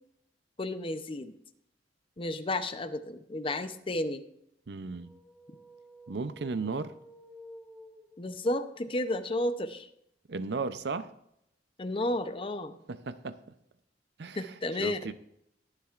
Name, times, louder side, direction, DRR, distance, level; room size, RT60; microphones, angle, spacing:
voice 1, 0.6-1.3 2.2-4.2 8.2-9.9 11.8-12.8 14.4-15.1, left 1 dB, 30° left, 10 dB, 0.7 m, -32 dB
voice 2, 4.7-5.1 6.1-6.9 10.3-11.1 12.9-13.4 14.2-14.5 14.8-15.1, right 4 dB, 65° right, 13 dB, 0.6 m, -35 dB
sound 1, 4.9-8.5, left 1 dB, ahead, 1.1 m, -52 dB
20.5 x 7.3 x 2.5 m, 0.77 s
head